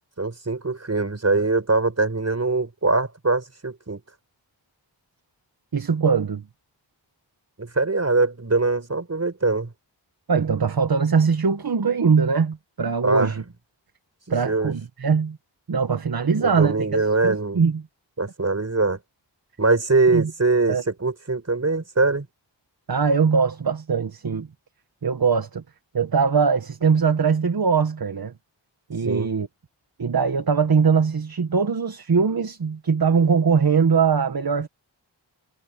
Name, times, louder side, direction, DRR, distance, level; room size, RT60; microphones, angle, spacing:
voice 1, 0.2-4.0 7.6-9.7 13.0-13.3 14.4-14.7 16.4-17.7 18.2-19.0 19.6-22.3 29.0-29.3, right 3 dB, 35° right, 6.1 m, -22 dB
voice 2, 5.7-6.4 10.3-13.4 14.3-15.4 15.7-17.8 20.1-20.3 20.7-20.8 22.9-24.5 25.0-25.6 25.9-28.3 28.9-29.5 30.0-34.7, right 5 dB, 50° right, 1.5 m, -21 dB
wide cardioid pair, 100°, 45 cm